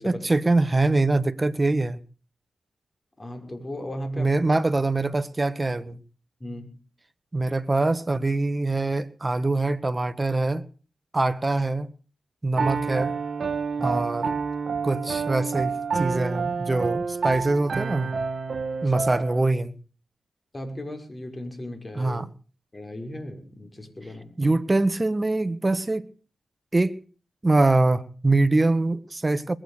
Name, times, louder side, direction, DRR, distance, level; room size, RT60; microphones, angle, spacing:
voice 1, 0.0-2.0 4.2-6.0 7.3-10.6 11.1-11.9 12.4-13.1 13.8-14.3 14.8-18.1 18.8-19.8 22.0-22.3 24.4-26.1 26.7-27.0 27.4-29.6, right 2 dB, 30° right, 1.4 m, -23 dB
voice 2, 3.2-4.5 6.4-6.8 13.8-14.0 18.7-19.0 20.5-22.2 22.7-24.6, left 1 dB, 30° left, 6.0 m, -37 dB
Piano, 12.6-19.4, right 5 dB, 60° right, 1.4 m, -28 dB
21.0 x 9.2 x 6.7 m
supercardioid pair, 40°, 0 cm